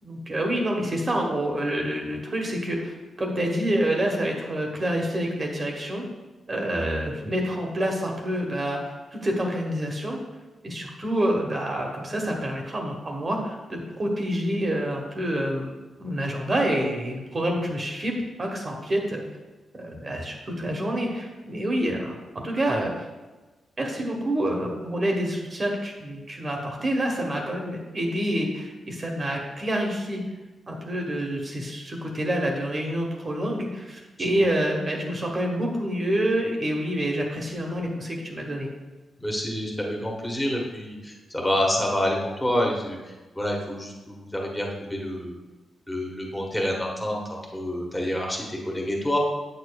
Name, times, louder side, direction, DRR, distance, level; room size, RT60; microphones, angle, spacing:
voice 1, 0.0-6.0 6.5-10.2 10.6-15.7 16.0-18.1 18.4-19.2 19.7-22.1 22.4-23.1 23.8-30.2 30.7-38.7, right 1 dB, 25° right, 0 dB, 1.0 m, -27 dB
voice 2, 39.2-43.0 43.3-45.3 45.9-49.2, left 1 dB, 5° left, -1 dB, 1.2 m, -28 dB
9.1 x 6.7 x 2.2 m, 1.2 s
wide cardioid pair, 165°, 0 cm